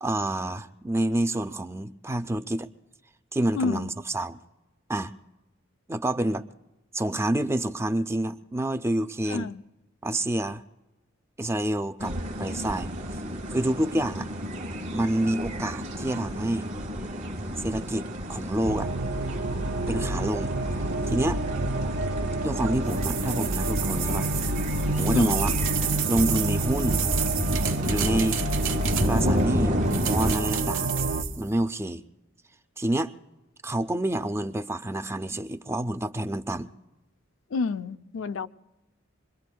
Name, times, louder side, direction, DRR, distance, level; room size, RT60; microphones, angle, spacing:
voice 1, 0.0-2.7 3.3-4.4 4.9-5.1 5.9-6.4 6.9-9.5 10.0-10.6 11.4-12.9 13.5-14.3 14.9-16.7 17.6-18.9 19.9-20.5 21.1-21.4 22.4-24.3 24.9-25.5 26.1-27.0 27.9-28.4 29.0-30.9 31.4-32.0 32.8-33.1 33.6-36.7, right 1 dB, 15° right, 0.4 m, -28 dB
voice 2, 3.5-3.9 9.3-9.6 25.1-25.4 37.5-38.5, left 4 dB, 70° left, 0.5 m, -29 dB
sound 1, 12.0-30.4, equal, 35° right, 1.1 m, -31 dB
sound 2, 18.6-31.2, right 1 dB, 55° right, 0.7 m, -29 dB
sound 3, 22.9-29.4 29.9-31.4, right 10 dB, 70° right, 1.1 m, -31 dB
26.5 x 22.0 x 2.3 m
head